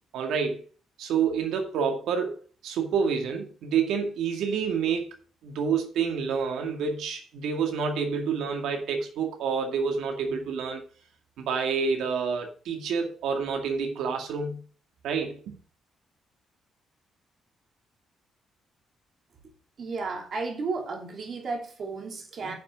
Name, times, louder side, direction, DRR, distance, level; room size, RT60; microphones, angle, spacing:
voice 1, 0.1-0.6 1.0-2.4 2.6-5.1 5.4-10.8 11.4-14.6 15.0-15.6, right 6 dB, 90° right, 2.0 m, -28 dB
voice 2, 19.8-22.5, right 4 dB, 40° right, 2.8 m, -33 dB
10.0 x 6.0 x 5.2 m
cardioid pair, 175°, 0 cm